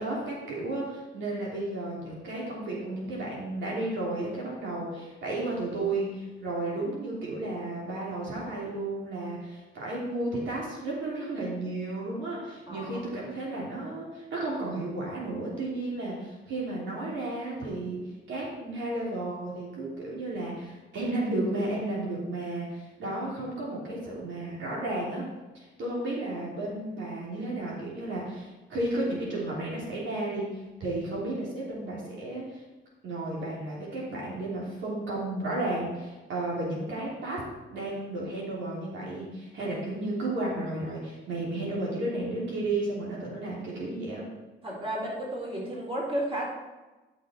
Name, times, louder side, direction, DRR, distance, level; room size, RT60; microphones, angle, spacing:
voice 1, 0.0-18.0 18.3-25.2 25.5-32.6 33.0-37.4 37.7-44.2, right 2 dB, 70° right, -5 dB, 3.2 m, -33 dB
voice 2, 12.7-13.0 44.6-46.4, right 1 dB, 30° right, -3 dB, 3.7 m, -32 dB
12.0 x 5.9 x 4.5 m, 1.1 s
cardioid pair, 90°, 20 cm